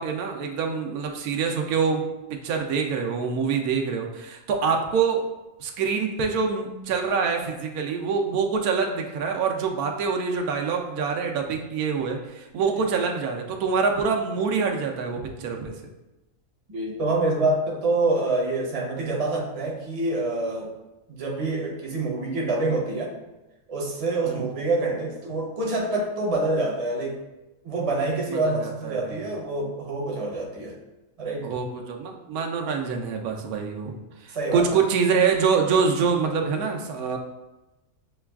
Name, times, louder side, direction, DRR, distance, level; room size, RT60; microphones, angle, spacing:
voice 1, 0.0-2.0 2.3-5.3 5.6-15.7 24.2-24.4 28.3-29.2 31.4-33.9 34.2-37.2, right 5 dB, 90° right, 2 dB, 1.1 m, -25 dB
voice 2, 16.7-20.7 21.1-23.1 23.7-27.2 27.6-30.8 31.2-31.5 34.3-34.6, right 2 dB, 35° right, -2 dB, 0.6 m, -26 dB
6.5 x 2.3 x 2.3 m, 1.0 s
omnidirectional pair, 1.5 m